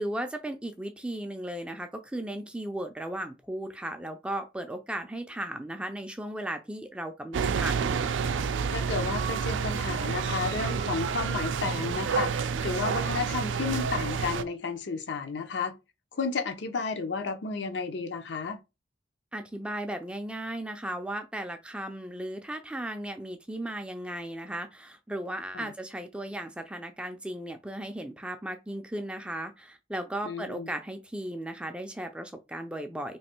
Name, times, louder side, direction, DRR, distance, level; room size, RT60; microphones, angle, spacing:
voice 1, 0.0-7.8 19.3-33.2, right 1 dB, 5° right, 0.4 m, -36 dB
sound 1, 7.3-14.4, right 6 dB, 80° right, 0.4 m, -29 dB
voice 2, 8.7-15.7 16.1-18.6 25.5-25.7 30.2-30.7, left 4 dB, 65° left, 0.6 m, -32 dB
3.1 x 2.6 x 4.4 m
head